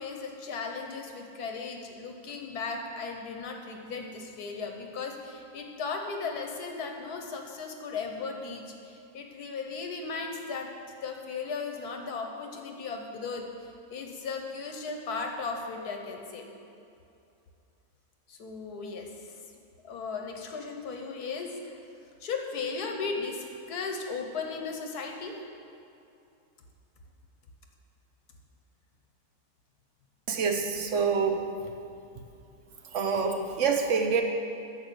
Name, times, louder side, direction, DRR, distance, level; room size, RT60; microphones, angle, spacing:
voice 1, 0.0-10.7 11.0-13.5 13.9-16.5 18.3-19.4 19.8-21.8 22.2-25.4, left 4 dB, 85° left, 3 dB, 1.7 m, -36 dB
voice 2, 30.3-31.4 32.9-34.2, right 5 dB, 55° right, 4 dB, 1.2 m, -26 dB
11.0 x 7.4 x 7.0 m, 2.6 s
omnidirectional pair, 1.6 m